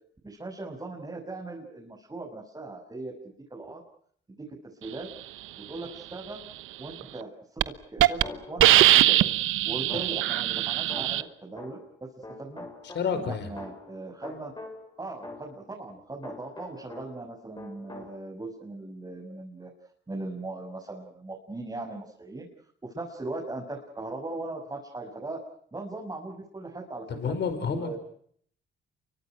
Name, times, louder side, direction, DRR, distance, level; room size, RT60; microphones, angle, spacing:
voice 1, 0.2-3.8 4.3-4.5 4.8-5.1 5.7-6.4 6.8-7.3 7.9-9.3 9.6-12.1 12.4-12.6 13.1-14.5 15.0-19.7 20.1-22.5 22.8-25.4 25.7-27.3 27.7-28.0, right 2 dB, 20° right, -1 dB, 6.4 m, -39 dB
Hiss, 7.0-7.2 7.6-7.7 8.0-8.2 8.6-11.2, right 15 dB, 90° right, 1.1 m, -21 dB
sound 1, 8.2-9.4 9.9-12.0 12.2-17.3 17.6-18.2, left 2 dB, 20° left, 7.4 m, -45 dB
voice 2, 12.8-13.5 27.1-28.0, left 6 dB, 60° left, 9 dB, 5.2 m, -30 dB
29.0 x 24.5 x 6.1 m, 0.62 s
cardioid pair, 90°, 20 cm